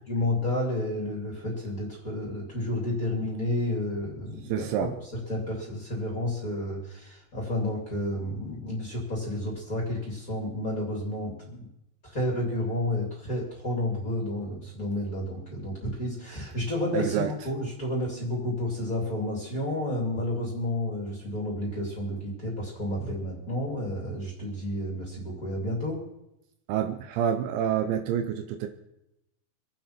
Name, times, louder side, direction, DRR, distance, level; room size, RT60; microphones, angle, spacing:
voice 1, 0.1-4.9 5.3-11.7 12.0-26.0, left 1 dB, 20° left, -3 dB, 3.1 m, -31 dB
voice 2, 4.4-4.9 16.3-16.5 16.9-17.3 26.7-28.7, right 9 dB, 80° right, 6 dB, 3.0 m, -28 dB
26.0 x 9.3 x 4.5 m, 0.84 s
omnidirectional pair, 5.6 m